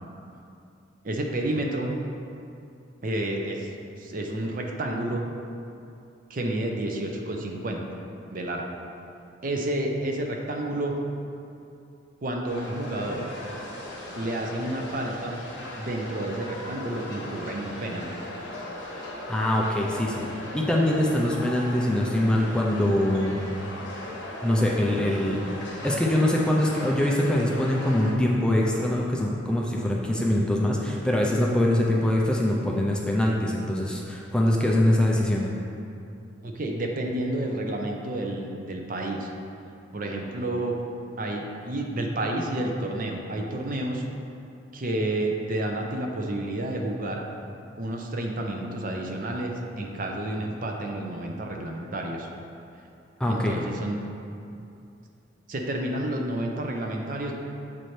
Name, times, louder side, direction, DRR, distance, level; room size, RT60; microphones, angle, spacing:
voice 1, 1.0-1.9 3.0-3.7 4.0-5.2 6.3-7.8 8.3-8.6 9.4-11.0 12.2-13.2 14.2-15.4 15.8-18.1 36.4-39.3 39.9-40.7 41.2-44.1 44.7-47.2 47.8-52.3 53.3-54.0 55.5-57.3, right 1 dB, 45° right, 1 dB, 0.6 m, -30 dB
sound 1, 12.5-28.1, left 1 dB, 70° left, 1.1 m, -38 dB
voice 2, 19.3-20.2 20.5-23.4 24.4-25.4 25.8-35.5 53.2-53.6, left 1 dB, 5° left, -3 dB, 0.4 m, -23 dB
7.7 x 3.2 x 4.3 m, 2.6 s
head